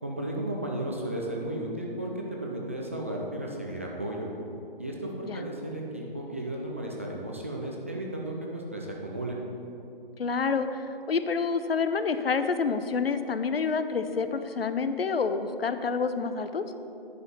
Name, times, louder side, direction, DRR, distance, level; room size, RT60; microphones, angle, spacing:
voice 1, 0.0-4.3 4.8-9.4, right 1 dB, 15° right, -2 dB, 0.3 m, -34 dB
voice 2, 10.2-16.6, left 5 dB, 85° left, 10 dB, 0.7 m, -28 dB
9.9 x 5.1 x 5.8 m, 2.7 s
figure-of-eight pair, 145°, 29 cm